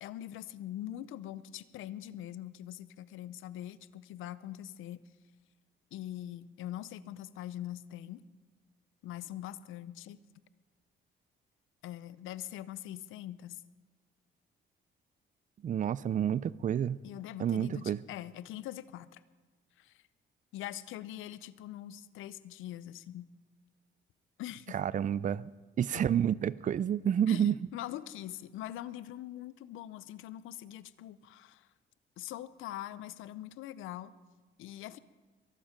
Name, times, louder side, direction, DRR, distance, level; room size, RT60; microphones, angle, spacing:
voice 1, 0.0-5.0 5.9-8.2 9.0-10.2 11.8-13.6 17.0-19.2 19.8-20.0 20.5-23.3 24.4-24.8 25.9-26.0 27.3-31.7 32.2-34.1 34.6-35.0, left 13 dB, 85° left, 17 dB, 0.6 m, -43 dB
voice 2, 15.6-17.0 17.4-18.0 24.7-25.5 25.8-27.6, right 9 dB, 40° right, 19 dB, 0.4 m, -29 dB
22.0 x 12.0 x 5.1 m, 1.3 s
cardioid pair, 90°, 20 cm